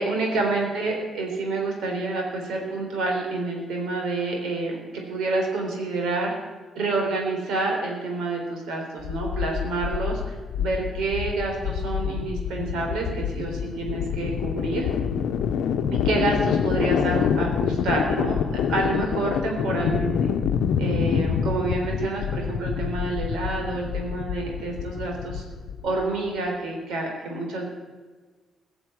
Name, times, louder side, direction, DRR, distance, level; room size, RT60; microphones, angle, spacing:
voice 1, 0.0-6.3 6.7-14.9 15.9-20.3 20.8-25.4 25.8-27.7, right 2 dB, 80° right, 1 dB, 3.9 m, -28 dB
sound 1, 9.0-26.0, left 7 dB, 80° left, 0.8 m, -27 dB
16.5 x 7.0 x 8.8 m, 1.4 s
cardioid pair, 90°, 0 cm